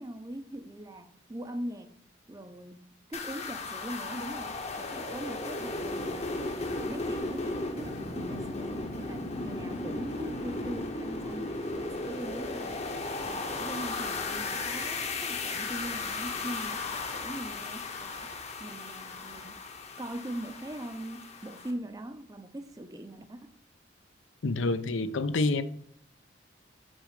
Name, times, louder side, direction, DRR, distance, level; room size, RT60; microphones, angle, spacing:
voice 1, 0.0-1.9 2.3-6.3 6.6-12.8 13.2-18.3 18.6-19.6 20.0-23.5, right 1 dB, 20° right, 0.5 m, -41 dB
sound 1, 3.1-21.7, left 3 dB, 35° left, 0.8 m, -35 dB
voice 2, 24.4-25.6, left 3 dB, 85° left, 0.6 m, -27 dB
6.3 x 4.8 x 6.5 m
head